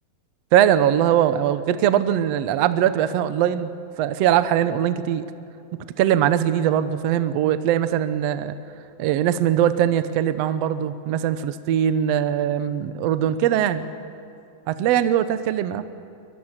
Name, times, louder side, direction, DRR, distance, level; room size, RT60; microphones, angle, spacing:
voice 1, 0.5-3.7 4.0-5.2 6.0-8.6 9.0-13.8 14.7-15.8, right 10 dB, 85° right, 12 dB, 1.4 m, -21 dB
23.5 x 21.5 x 7.4 m, 2.6 s
omnidirectional pair, 4.2 m